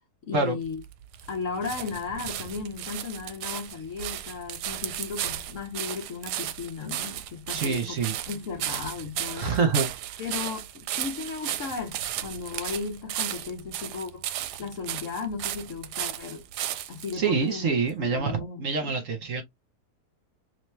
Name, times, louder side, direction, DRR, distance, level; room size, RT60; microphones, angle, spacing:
voice 1, 0.2-0.8 1.3-8.0 8.3-9.5 10.2-14.3 14.6-16.4 16.9-17.6 18.0-19.0, left 5 dB, 55° left, 1.1 m, -35 dB
sound 1, 0.6-17.2 17.9-18.0, right 12 dB, 80° right, 1.1 m, -35 dB
voice 2, 7.5-8.2 9.4-9.9 17.2-19.4, right 5 dB, 55° right, 1.2 m, -26 dB
3.0 x 2.9 x 3.3 m
omnidirectional pair, 1.8 m